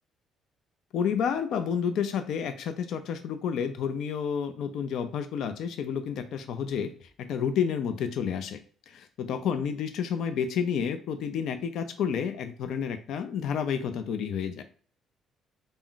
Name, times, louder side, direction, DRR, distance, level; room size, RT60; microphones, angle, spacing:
voice 1, 0.9-14.6, left 7 dB, 70° left, 9 dB, 0.4 m, -30 dB
2.3 x 2.0 x 3.8 m, 0.43 s
cardioid pair, 95°, 0 cm